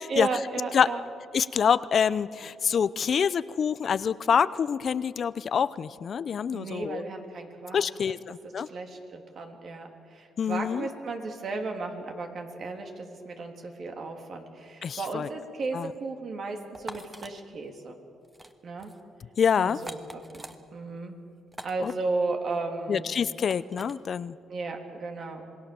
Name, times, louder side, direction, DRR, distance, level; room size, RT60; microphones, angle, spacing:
voice 1, 0.1-1.0 6.5-8.1 8.6-18.0 18.6-18.9 19.6-21.2 21.6-23.1 24.5-25.5, right 3 dB, 55° right, 3 dB, 3.2 m, -34 dB
voice 2, 1.3-7.0 7.7-8.7 10.4-10.9 14.8-15.3 15.7-15.9 19.4-19.8 21.8-21.9 22.9-24.3, left 7 dB, 50° left, 17 dB, 0.6 m, -26 dB
sound 1, 16.7-17.3 18.2-18.5 18.8-19.0 19.7-20.6 21.5-22.0 23.4-23.9, right 1 dB, 15° right, 1.6 m, -43 dB
26.5 x 20.0 x 7.0 m, 2.6 s
cardioid pair, 90°, 0 cm